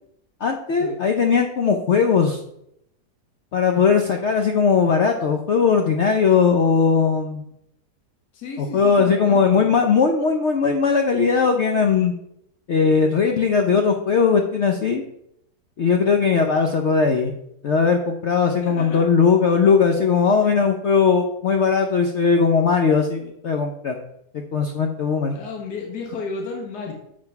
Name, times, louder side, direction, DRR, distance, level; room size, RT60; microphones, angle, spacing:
voice 1, 0.4-2.4 3.5-7.4 8.6-12.1 12.7-15.0 15.8-17.3 17.6-24.0 24.3-25.4, left 5 dB, 55° left, 4 dB, 0.8 m, -19 dB
voice 2, 8.3-9.7 18.5-19.0 25.3-26.9, left 4 dB, 75° left, 0 dB, 1.7 m, -33 dB
7.4 x 4.7 x 5.8 m, 0.77 s
omnidirectional pair, 1.7 m